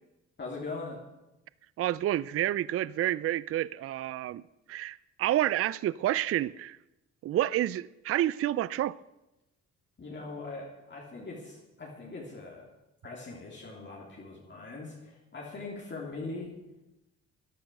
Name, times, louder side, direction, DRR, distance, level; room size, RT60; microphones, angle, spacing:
voice 1, 0.4-1.0 10.0-12.7 13.0-16.5, left 3 dB, 40° left, 3.2 m, -41 dB
voice 2, 1.8-4.4 4.7-6.8 7.2-9.0, right 13 dB, 50° right, 0.4 m, -29 dB
13.5 x 10.5 x 6.5 m
cardioid pair, 90°, 30 cm